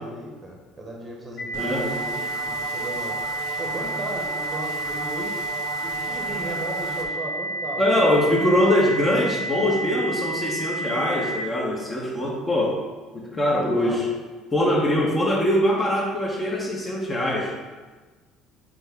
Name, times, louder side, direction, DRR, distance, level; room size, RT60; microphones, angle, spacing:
voice 1, 0.0-3.2 3.6-5.4 5.8-8.4 13.7-14.1, right 1 dB, 25° right, -1 dB, 0.9 m, -36 dB
sound 1, 1.4-11.4, right 2 dB, 70° left, 0.8 m, -30 dB
voice 2, 1.5-1.9 7.8-12.8 13.1-14.0 14.5-17.5, left 1 dB, 20° left, -2 dB, 0.8 m, -22 dB
sound 2, 1.5-7.1, right 4 dB, 85° right, 0.6 m, -35 dB
6.1 x 2.1 x 3.5 m, 1.3 s
cardioid pair, 105°, 0 cm